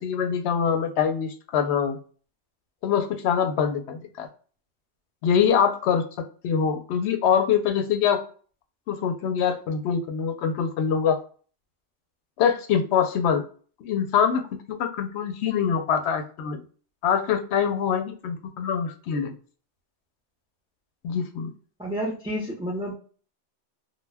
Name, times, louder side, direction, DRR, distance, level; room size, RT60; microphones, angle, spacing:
voice 1, 0.0-2.0 2.8-4.3 5.2-6.0 6.4-8.2 8.9-11.2 12.4-13.4 13.8-14.4 14.7-16.6 17.0-19.3 21.0-21.5, left 7 dB, 70° left, 7 dB, 0.8 m, -24 dB
voice 2, 21.8-22.9, equal, 5° right, -3 dB, 0.5 m, -30 dB
2.2 x 2.1 x 3.3 m, 0.41 s
omnidirectional pair, 1.2 m